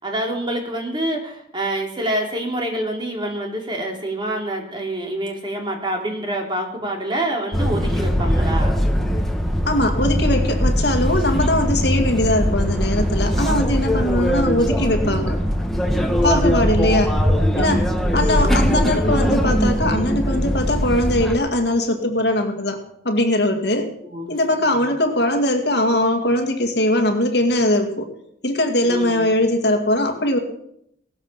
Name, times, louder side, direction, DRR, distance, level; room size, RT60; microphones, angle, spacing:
voice 1, 0.0-8.8 16.3-16.7 17.5-18.1 24.1-24.3 24.6-24.8 28.8-29.3, right 1 dB, 25° right, 1 dB, 3.1 m, -27 dB
sound 1, 7.5-21.4, equal, ahead, 1.6 m, -20 dB
voice 2, 9.7-15.4 16.2-17.2 17.5-17.9 18.1-22.8 23.0-23.9 24.3-28.1 28.4-30.4, left 1 dB, 60° left, 5 dB, 2.1 m, -20 dB
17.5 x 13.0 x 5.8 m, 0.75 s
head